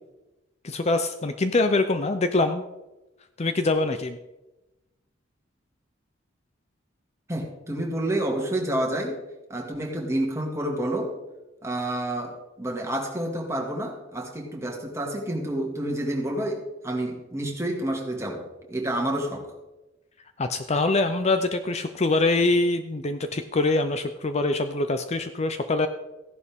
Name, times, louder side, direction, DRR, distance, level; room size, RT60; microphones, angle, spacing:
voice 1, 0.6-2.6 3.4-4.2 20.4-25.9, left 2 dB, 35° left, 9 dB, 0.5 m, -24 dB
voice 2, 7.3-9.2 9.5-11.1 11.6-19.5, right 1 dB, 15° right, 0 dB, 2.1 m, -29 dB
15.0 x 11.0 x 3.6 m, 1.0 s
head